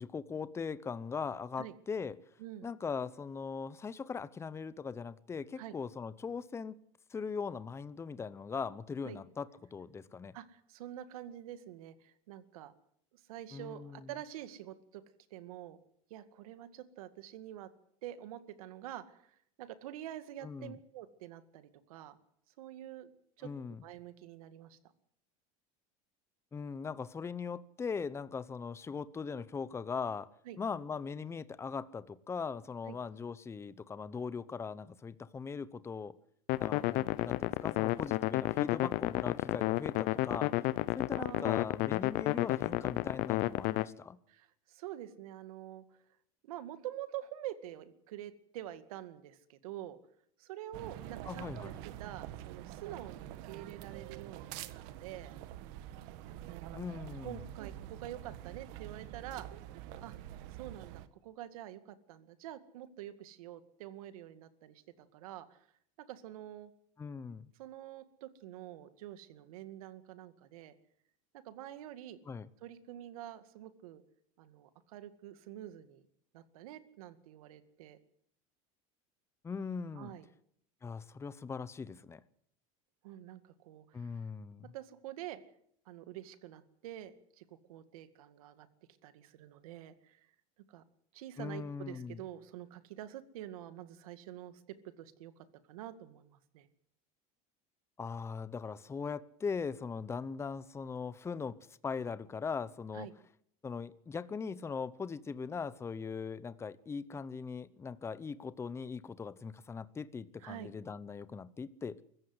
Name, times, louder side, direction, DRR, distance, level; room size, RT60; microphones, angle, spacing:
voice 1, 0.0-2.2 2.6-6.7 7.1-10.4 13.5-14.1 20.4-20.8 23.4-23.8 26.5-30.3 30.6-36.1 36.6-40.5 41.0-44.2 51.3-51.8 56.7-57.4 67.0-67.5 72.3-72.5 79.4-80.1 80.8-82.2 83.9-84.7 91.4-92.2 98.0-103.1 103.6-112.0, left 5 dB, 15° left, 17 dB, 0.8 m, -40 dB
voice 2, 10.3-12.7 13.1-15.0 15.3-15.8 16.1-17.7 18.0-22.2 22.6-23.1 23.4-23.5 23.8-24.8 30.4-30.6 32.9-33.0 41.2-41.6 44.3-45.8 46.4-50.0 50.4-51.7 52.0-55.3 56.3-56.7 57.2-59.5 60.0-60.1 60.5-65.6 66.0-66.7 67.6-70.7 71.3-72.2 72.6-74.0 74.4-76.0 76.3-78.0 80.0-80.3 83.0-84.2 84.7-85.4 85.9-88.7 89.0-90.3 90.7-90.8 91.1-94.6 95.0-96.7 102.9-103.1 110.4-110.7, right 12 dB, 85° right, 12 dB, 2.1 m, -47 dB
sound 1, 36.5-43.8, left 19 dB, 50° left, 0.8 m, -31 dB
sound 2, 50.7-61.1, right 13 dB, 60° right, 1.4 m, -46 dB
24.5 x 14.5 x 7.9 m, 0.67 s
supercardioid pair, 140°, 18 cm